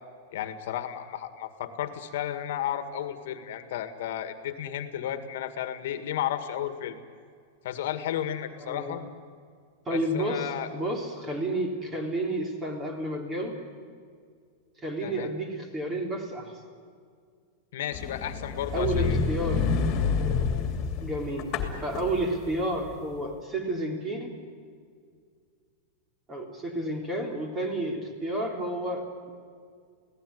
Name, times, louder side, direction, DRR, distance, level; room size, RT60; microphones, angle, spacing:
voice 1, 0.3-7.0 7.6-9.0 9.9-10.7 15.0-15.3 17.7-19.2, left 10 dB, 65° left, 9 dB, 1.9 m, -33 dB
voice 2, 8.6-9.0 9.9-13.6 14.8-16.5 18.7-19.7 21.0-21.5 21.8-24.4 26.3-29.3, right 1 dB, 15° right, 3 dB, 3.6 m, -31 dB
sound 1, 17.9-22.9, left 5 dB, 30° left, 2.9 m, -28 dB
28.0 x 17.5 x 9.7 m, 2.1 s
supercardioid pair, 165°, 0 cm